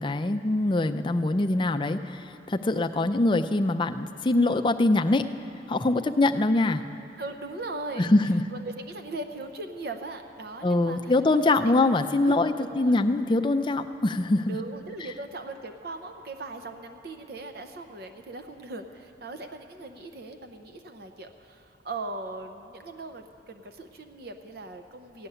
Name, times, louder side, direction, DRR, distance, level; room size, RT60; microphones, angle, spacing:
voice 1, 0.0-5.3 5.7-6.8 8.0-8.4 10.6-14.6, left 2 dB, 25° left, 7 dB, 0.4 m, -23 dB
voice 2, 7.2-8.1 8.5-11.7 12.2-13.0 14.5-25.3, right 2 dB, 55° right, 6 dB, 0.6 m, -39 dB
15.0 x 6.9 x 9.9 m, 2.9 s
head